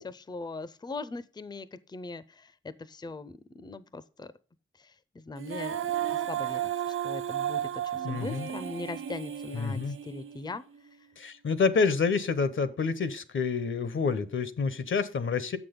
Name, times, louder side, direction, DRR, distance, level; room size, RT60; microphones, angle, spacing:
voice 1, 0.0-4.3 4.8-5.8 6.3-6.6 7.0-10.6, left 3 dB, 20° left, 16 dB, 0.4 m, -40 dB
Female singing, 5.4-10.6, right 10 dB, 85° right, 0.4 m, -33 dB
voice 2, 8.0-8.5 9.5-9.9 11.2-15.6, left 5 dB, 75° left, 13 dB, 0.7 m, -28 dB
7.3 x 6.0 x 5.1 m, 0.36 s
wide cardioid pair, 85°, 21 cm